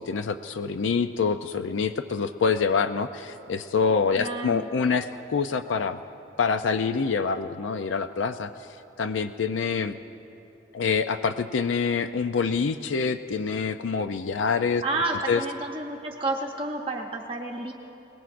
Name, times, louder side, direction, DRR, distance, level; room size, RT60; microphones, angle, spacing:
voice 1, 0.0-6.0 6.4-8.7 9.0-10.0 10.7-14.8 15.3-15.4, left 5 dB, 90° left, 9 dB, 0.4 m, -26 dB
voice 2, 4.2-4.6 14.8-17.7, right 2 dB, 30° right, 0 dB, 0.8 m, -30 dB
27.5 x 18.5 x 2.5 m, 3.0 s
head